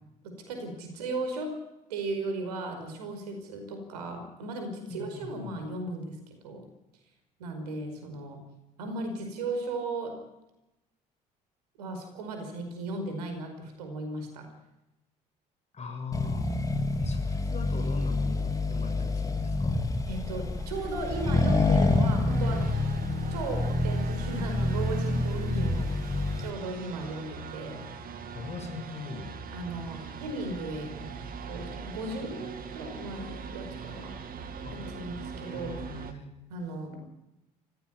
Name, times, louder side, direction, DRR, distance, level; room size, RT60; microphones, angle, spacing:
voice 1, 0.2-1.5 1.9-6.7 7.4-8.4 8.8-10.2 11.8-14.5 20.1-22.7 23.3-27.8 29.5-31.2 31.5-34.1 34.7-35.8 36.5-37.0, right 2 dB, 70° right, 6 dB, 5.1 m, -36 dB
voice 2, 4.9-5.6 15.7-16.5 17.0-19.8 28.3-29.3 34.6-34.8 35.4-36.3, left 5 dB, 30° left, 4 dB, 7.1 m, -40 dB
Accelerating revving vroom, 16.1-26.5, left 2 dB, 15° left, 3.3 m, -27 dB
sound 1, 20.7-36.1, right 6 dB, 45° right, 2.5 m, -42 dB
23.0 x 16.0 x 9.9 m, 0.92 s
figure-of-eight pair, 55°, 21 cm